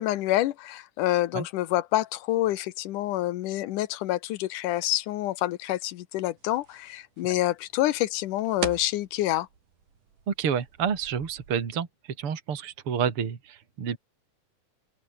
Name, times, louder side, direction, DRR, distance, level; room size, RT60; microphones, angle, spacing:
voice 1, 0.0-9.5, left 15 dB, 85° left, 2.5 m, -27 dB
sound 1, 6.3-11.7, right 6 dB, 85° right, 5.2 m, -42 dB
voice 2, 10.3-14.0, right 7 dB, 45° right, 3.3 m, -29 dB
omnidirectional pair, 3.6 m